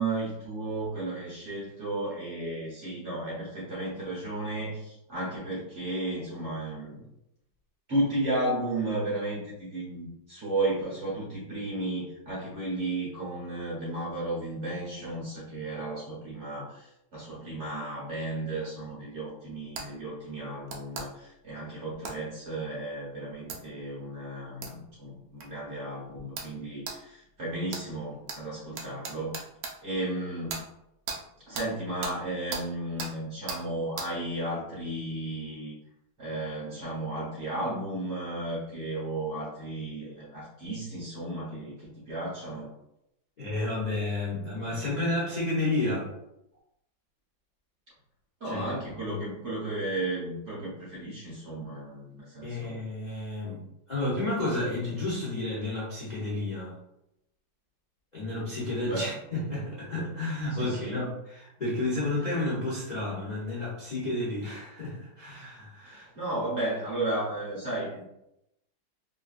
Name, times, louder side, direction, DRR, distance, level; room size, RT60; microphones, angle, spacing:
voice 1, 0.0-7.0 7.9-29.4 29.8-30.7 31.5-35.7 36.2-42.7 48.4-52.8 58.9-59.1 60.5-61.1 65.8-68.0, right 2 dB, 50° right, -7 dB, 0.9 m, -34 dB
sound 1, 19.8-19.9 20.7-21.1 22.0-22.2 23.5-23.6 24.6-24.7 25.4-25.5 26.4-26.5 26.9-27.0 27.7-27.8 28.3-28.4 28.8-29.7 30.5-30.6 31.1-31.2 31.5-31.7 32.0-32.2 32.5-32.6 33.0-33.1 33.5-33.6 34.0-34.1, right 4 dB, 75° right, 0.8 m, -36 dB
voice 2, 43.4-46.1 48.4-48.6 49.0-49.2 52.4-56.7 58.1-66.0, left 2 dB, 50° left, -7 dB, 0.5 m, -31 dB
3.0 x 2.5 x 2.4 m, 0.82 s
omnidirectional pair, 2.1 m